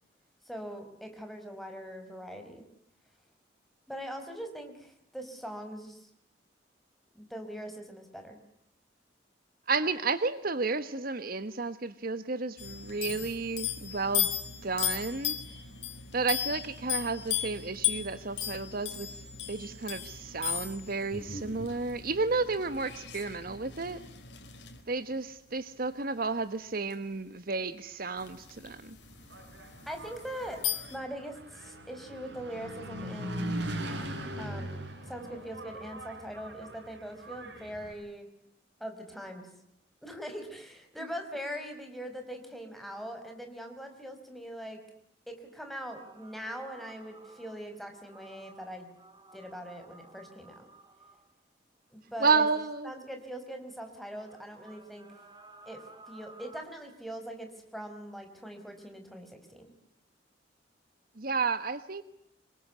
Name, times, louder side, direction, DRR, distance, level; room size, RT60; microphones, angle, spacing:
voice 1, 0.5-2.6 3.9-6.1 7.1-8.4 29.9-30.6 30.9-33.6 34.4-38.3 38.8-39.5 40.0-44.8 45.3-48.9 49.3-50.7 51.9-52.4 52.8-55.1 55.6-59.7, equal, ahead, 4 dB, 5.0 m, -42 dB
voice 2, 9.7-14.3 14.6-15.4 16.1-19.1 19.5-24.0 24.9-29.0 52.2-52.9 61.2-62.0, right 4 dB, 55° right, 12 dB, 1.3 m, -31 dB
sound 1, 12.6-24.8 26.9-27.0 28.2-31.0, left 9 dB, 70° left, 4.6 m, -36 dB
Engine, 29.1-37.9, right 1 dB, 80° right, 6.7 m, -40 dB
sound 2, 45.9-51.4 53.1-53.2 54.0-56.6, right 2 dB, 25° right, 3.2 m, -55 dB
27.0 x 23.0 x 9.5 m, 0.76 s
head